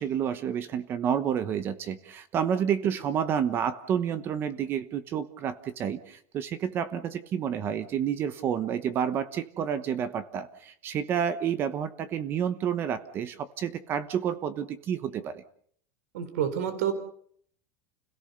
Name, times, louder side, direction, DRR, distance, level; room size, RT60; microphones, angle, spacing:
voice 1, 0.0-15.4, right 8 dB, 25° right, 13 dB, 1.1 m, -29 dB
voice 2, 16.1-16.9, right 9 dB, 85° right, 11 dB, 3.9 m, -28 dB
29.5 x 17.5 x 6.8 m, 0.62 s
supercardioid pair, 170°, 8 cm